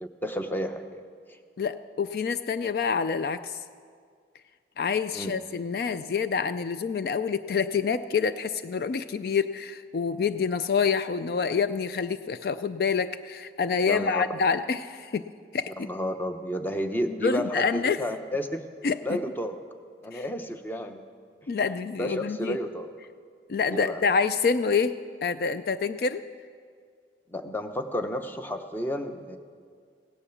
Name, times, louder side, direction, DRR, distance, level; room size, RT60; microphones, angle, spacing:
voice 1, 0.0-1.0 1.3-1.4 5.1-5.3 13.8-14.2 15.8-18.7 19.0-19.5 20.0-21.0 22.0-22.9 23.7-24.0 27.3-29.4, equal, 10° left, 7 dB, 0.7 m, -31 dB
voice 2, 1.6-3.6 4.8-15.2 15.5-15.9 17.2-18.0 18.8-19.0 20.1-20.2 21.5-22.6 23.5-25.0 25.2-26.2, left 5 dB, 55° left, 12 dB, 0.3 m, -27 dB
17.0 x 9.9 x 7.0 m, 2.1 s
head